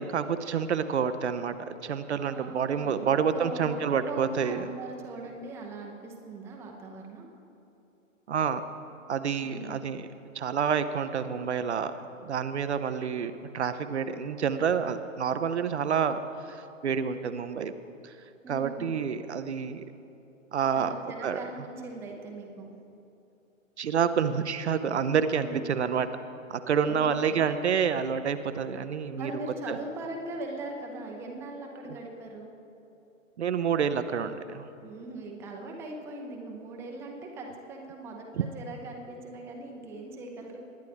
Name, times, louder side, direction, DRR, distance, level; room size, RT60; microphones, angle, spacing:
voice 1, 0.0-4.6 8.3-8.6 9.1-10.1 10.3-11.9 12.2-16.2 16.5-17.7 18.0-18.1 18.5-19.8 20.5-20.9 21.2-21.4 23.8-26.1 26.5-29.3 29.7-29.8 31.9-32.0 33.4-34.7 38.4-38.5, right 7 dB, 55° right, 11 dB, 0.6 m, -28 dB
voice 2, 2.2-7.3 9.4-9.8 18.4-18.9 20.7-22.8 25.4-25.7 26.8-27.5 29.1-32.5 34.8-40.6, right 2 dB, 5° right, 0 dB, 0.6 m, -40 dB
19.5 x 10.0 x 3.4 m, 2.8 s
figure-of-eight pair, 120°, 40 cm